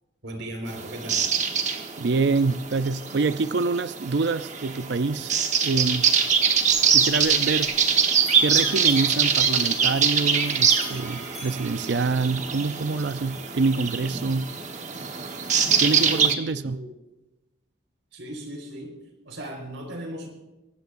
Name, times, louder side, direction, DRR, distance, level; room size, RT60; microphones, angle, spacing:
voice 1, 0.2-1.2 16.0-17.0 18.1-18.9 19.2-20.3, right 1 dB, 80° right, 4.4 m, -36 dB
sound 1, 0.7-16.3, right 6 dB, 40° right, 1.2 m, -24 dB
voice 2, 2.0-5.4 5.6-6.1 6.9-7.7 8.4-14.5 15.8-16.8, right 3 dB, 60° right, 0.5 m, -26 dB
Bell, 6.5-7.9 8.2-12.6, left 1 dB, ahead, 4.9 m, -47 dB
24.0 x 18.0 x 2.6 m
head